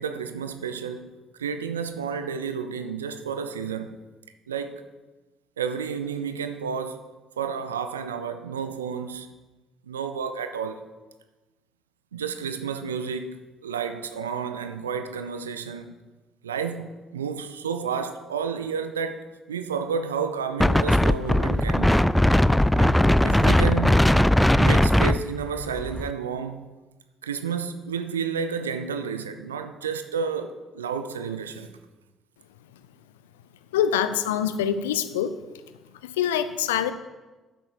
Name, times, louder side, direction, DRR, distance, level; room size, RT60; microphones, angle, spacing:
voice 1, 0.0-4.0 4.5-4.8 5.6-7.1 7.4-9.3 9.8-10.8 12.1-15.9 16.4-19.2 19.5-22.2 22.8-24.0 24.6-26.7 27.2-31.7, right 6 dB, 80° right, 0.6 m, -31 dB
Wind, 20.6-26.1, left 1 dB, 5° left, 0.4 m, -19 dB
voice 2, 33.7-35.4 36.0-36.9, left 9 dB, 75° left, 0.5 m, -25 dB
9.3 x 7.9 x 5.9 m
figure-of-eight pair, 45°, 0 cm